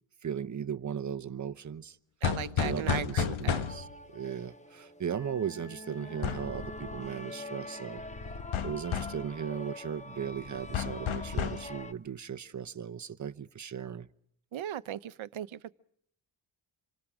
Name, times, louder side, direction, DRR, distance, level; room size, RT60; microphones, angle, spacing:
voice 1, 0.2-2.0 2.6-8.0 8.6-14.1, right 7 dB, 35° right, 1.0 m, -37 dB
sound 1, 2.2-4.0 6.2-6.5 8.5-9.3 10.7-11.7, left 8 dB, 75° left, 1.2 m, -31 dB
voice 2, 2.2-3.6 14.5-15.7, right 10 dB, 70° right, 1.0 m, -37 dB
sound 2, 3.6-11.9, left 2 dB, 15° left, 1.1 m, -45 dB
Purr, 6.2-7.2 7.9-9.0 9.7-11.8, left 4 dB, 40° left, 2.3 m, -46 dB
27.0 x 25.0 x 5.1 m
cardioid pair, 75°, 49 cm